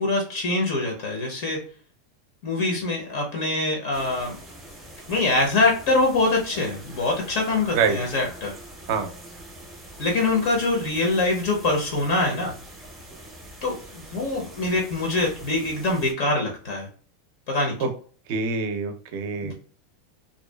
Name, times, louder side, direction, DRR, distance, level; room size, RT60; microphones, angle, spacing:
voice 1, 0.0-1.6 2.4-4.4 5.1-8.5 10.0-12.5 13.6-16.9 17.5-17.7 19.4-19.5, left 2 dB, 50° left, 0 dB, 0.6 m, -24 dB
sound 1, 3.9-16.1, right 1 dB, 5° right, 0.6 m, -44 dB
voice 2, 18.3-19.5, right 5 dB, 50° right, 7 dB, 0.5 m, -25 dB
2.5 x 2.2 x 2.2 m, 0.43 s
supercardioid pair, 165°, 0 cm